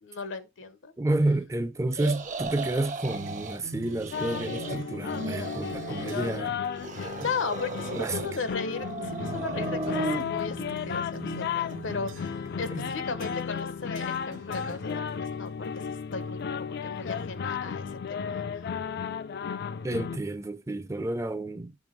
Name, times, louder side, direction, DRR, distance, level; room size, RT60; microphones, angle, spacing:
voice 1, 0.0-0.9 7.0-18.6, left 4 dB, 75° left, 0.8 m, -36 dB
voice 2, 1.0-6.6 7.2-7.3 7.9-8.3 12.7-12.9 19.8-21.7, right 2 dB, 15° right, 0.5 m, -30 dB
sound 1, 1.9-3.6 3.9-4.8 5.0-6.4 6.7-8.4 8.7-10.2, right 3 dB, 40° right, 0.8 m, -35 dB
sound 2, 3.1-6.5 7.2-7.6 8.3-8.7 9.1-12.5 13.2-13.6 13.9-15.3, right 5 dB, 80° right, 0.4 m, -46 dB
sound 3, 4.1-20.2, left 6 dB, 55° left, 0.4 m, -34 dB
6.2 x 3.4 x 5.1 m
head